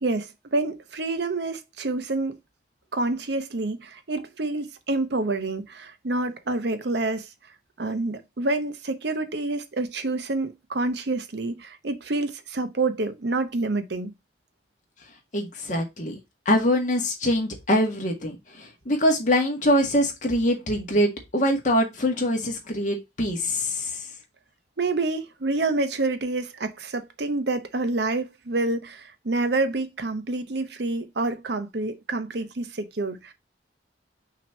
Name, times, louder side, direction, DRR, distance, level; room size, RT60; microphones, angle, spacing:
voice 1, 0.0-2.4 2.9-7.3 7.8-14.1 24.8-33.3, right 2 dB, 65° right, 0.8 m, -28 dB
voice 2, 15.3-16.2 16.5-24.0, equal, 45° left, 1.7 m, -24 dB
6.0 x 3.0 x 5.3 m
head